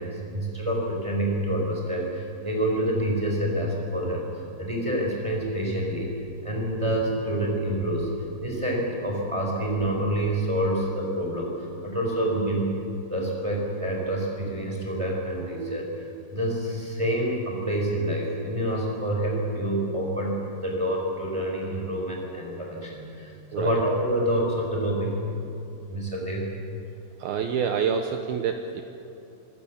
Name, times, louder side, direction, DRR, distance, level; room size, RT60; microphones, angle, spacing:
voice 1, 0.0-4.3 4.6-6.1 6.4-8.1 8.4-11.5 11.8-12.8 13.1-15.9 16.3-25.2 25.9-26.5, right 1 dB, 5° right, -1 dB, 3.4 m, -27 dB
voice 2, 27.2-28.8, right 7 dB, 85° right, 6 dB, 2.2 m, -27 dB
26.0 x 15.0 x 7.2 m, 2.8 s
omnidirectional pair, 5.5 m